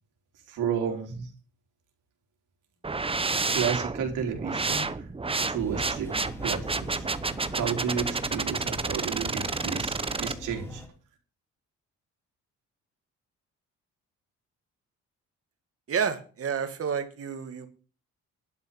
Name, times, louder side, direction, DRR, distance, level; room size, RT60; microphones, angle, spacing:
voice 1, 0.5-1.3 3.5-5.1 5.5-7.1 7.5-10.8, right 7 dB, 80° right, 2 dB, 3.8 m, -32 dB
sound 1, 2.8-10.3, right 3 dB, 20° right, 1.0 m, -30 dB
sound 2, 5.5-10.9, equal, 10° left, 3.5 m, -42 dB
voice 2, 15.9-17.7, right 7 dB, 50° right, 8 dB, 2.3 m, -30 dB
12.0 x 5.6 x 9.1 m, 0.38 s
cardioid pair, 90°, 30 cm